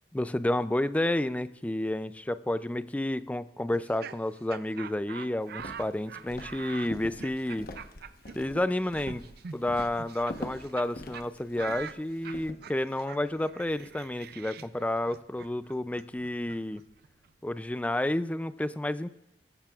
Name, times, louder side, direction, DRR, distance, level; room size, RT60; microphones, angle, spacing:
voice 1, 0.1-7.7 8.4-9.2 9.5-16.8 17.4-19.1, left 1 dB, 10° left, 13 dB, 0.4 m, -30 dB
Laughter, 3.7-10.9 11.1-11.3 11.6-17.3, right 7 dB, 60° right, 0.5 m, -45 dB
Walk footsteps, 5.5-12.5, left 1 dB, 55° left, 1.1 m, -44 dB
19.5 x 15.0 x 2.4 m, 0.86 s
head